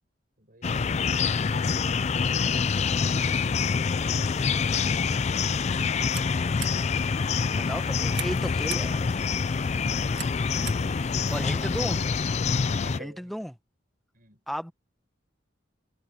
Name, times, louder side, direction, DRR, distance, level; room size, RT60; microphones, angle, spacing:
voice 1, 0.4-1.4 10.3-11.3 12.6-13.4 14.1-14.4, right 1 dB, 45° right, 7.2 m, -51 dB
sound 1, 0.6-13.0, left 5 dB, 35° left, 0.4 m, -26 dB
Light Switch Chain, 5.6-11.8, right 11 dB, 65° right, 1.5 m, -44 dB
sound 2, 6.9-12.7, right 6 dB, 25° right, 6.3 m, -59 dB
voice 2, 7.5-9.0 11.3-12.0 13.0-13.5 14.5-14.7, equal, ahead, 0.9 m, -34 dB
head